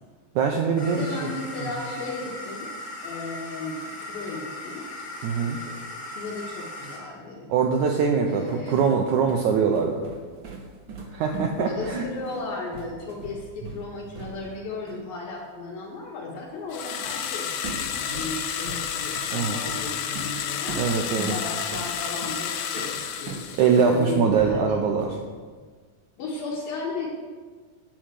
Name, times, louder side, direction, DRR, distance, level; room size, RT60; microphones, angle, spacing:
voice 1, 0.3-1.3 1.6-1.7 5.2-5.6 7.5-10.0 11.1-12.0 19.3-19.6 20.7-21.4 23.6-25.2, right 6 dB, 80° right, 2 dB, 1.8 m, -23 dB
sound 1, 0.8-7.0, left 1 dB, 35° left, 3.1 m, -38 dB
voice 2, 0.9-2.7 3.0-4.8 6.1-7.5 8.2-8.8 11.6-20.8 21.3-23.4 23.8-24.8 26.2-27.1, left 3 dB, 70° left, -4 dB, 3.2 m, -35 dB
sound 2, 8.4-14.6 14.9-15.1 17.0-17.3 17.6-24.0 24.4-25.3, right 3 dB, 60° right, 1.2 m, -39 dB
sound 3, 16.7-24.0, left 8 dB, 85° left, 2.8 m, -31 dB
9.9 x 7.4 x 7.6 m, 1.5 s
omnidirectional pair, 4.4 m